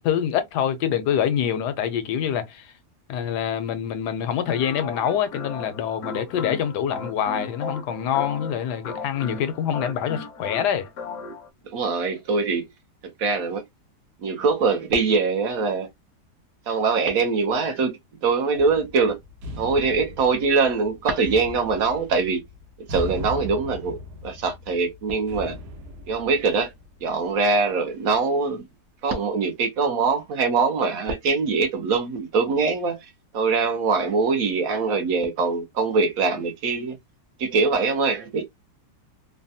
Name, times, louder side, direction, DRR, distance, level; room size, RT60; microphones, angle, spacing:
voice 1, 0.0-2.7 3.1-10.9, left 9 dB, 80° left, 1.2 m, -25 dB
sound 1, 4.5-11.5, left 4 dB, 65° left, 0.8 m, -36 dB
voice 2, 11.7-12.7 13.2-13.6 14.2-15.9 16.7-19.2 19.6-22.4 22.9-24.0 24.2-25.6 26.1-26.7 27.0-28.7 29.0-33.0 33.3-37.0 37.4-38.4, right 4 dB, 65° right, 1.0 m, -23 dB
sound 2, 18.5-27.2, left 1 dB, 85° right, 1.4 m, -38 dB
3.2 x 2.2 x 2.6 m
omnidirectional pair, 1.7 m